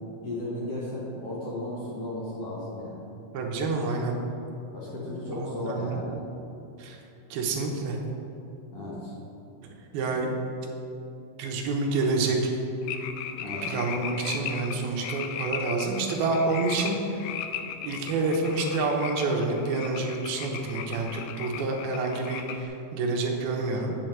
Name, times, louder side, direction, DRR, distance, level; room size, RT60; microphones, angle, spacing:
voice 1, 0.2-3.0 4.7-6.2 8.7-9.1 13.4-13.7, left 1 dB, 55° left, -7 dB, 1.9 m, -35 dB
voice 2, 3.3-4.2 5.3-6.0 6.8-7.0 7.3-8.0 9.6-10.3 11.4-12.6 13.6-17.0 17.8-24.0, right 3 dB, 90° right, 1 dB, 2.8 m, -28 dB
sound 1, 12.8-22.7, left 8 dB, 85° left, 2.5 m, -37 dB
8.2 x 7.8 x 4.6 m, 2.8 s
omnidirectional pair, 4.3 m